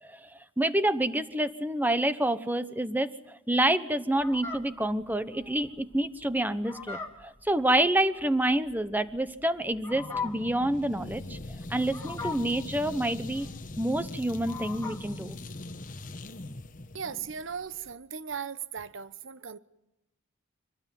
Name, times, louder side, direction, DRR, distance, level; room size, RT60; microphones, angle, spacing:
voice 1, 0.0-11.4 11.7-13.5 13.8-15.4, right 1 dB, 10° right, 1.0 m, -28 dB
Fowl, 4.1-15.2, left 5 dB, 10° left, 2.6 m, -41 dB
sound 1, 9.9-17.9, left 2 dB, 40° left, 1.1 m, -41 dB
voice 2, 16.9-19.6, right 7 dB, 65° right, 0.9 m, -37 dB
25.5 x 19.0 x 9.3 m
head